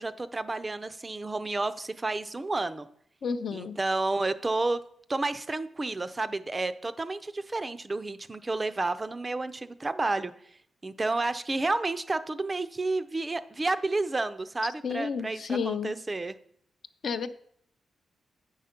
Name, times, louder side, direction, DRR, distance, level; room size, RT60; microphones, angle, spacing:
voice 1, 0.0-2.9 3.5-4.8 5.1-10.3 10.8-16.4, right 2 dB, 20° right, 12 dB, 0.4 m, -30 dB
voice 2, 3.2-3.8 14.8-16.0 17.0-17.3, left 6 dB, 55° left, 10 dB, 0.5 m, -31 dB
8.6 x 5.6 x 5.1 m, 0.65 s
wide cardioid pair, 135°, 0 cm